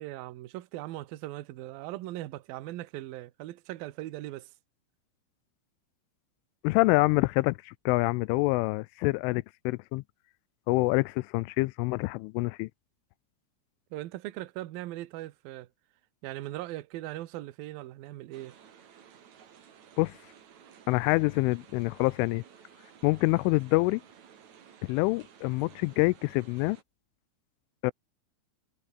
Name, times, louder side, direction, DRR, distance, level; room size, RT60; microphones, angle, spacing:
voice 1, 0.0-4.5 13.9-15.7 16.2-18.5, right 16 dB, 75° right, 2.2 m, -39 dB
voice 2, 6.6-10.0 10.7-12.7 20.0-20.2 20.9-22.4 23.0-24.0 24.8-26.8 27.8-27.9, left 23 dB, 85° left, 3.0 m, -26 dB
sound 1, 18.3-26.8, right 8 dB, 45° right, 2.8 m, -55 dB
omnidirectional pair, 5.7 m